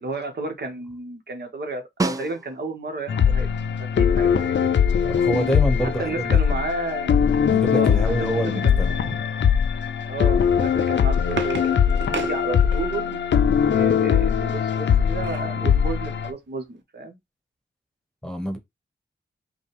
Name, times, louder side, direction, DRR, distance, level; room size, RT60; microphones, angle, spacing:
voice 1, 0.0-3.5 3.9-4.8 6.0-7.3 7.7-9.1 10.1-13.2 13.6-17.2, right 3 dB, 60° right, 1.2 m, -32 dB
Snare drum, 2.0-2.9 7.4-7.5, right 3 dB, 20° right, 0.5 m, -28 dB
sound 1, 3.1-16.3, left 7 dB, 75° left, 0.6 m, -21 dB
voice 2, 5.0-6.6 7.5-9.2 18.2-18.6, equal, 5° left, 1.1 m, -27 dB
sound 2, 10.7-13.1 14.7-15.6 16.1-16.2 16.4-16.7, right 5 dB, 80° right, 0.8 m, -35 dB
5.2 x 2.3 x 3.4 m
cardioid pair, 60°, 19 cm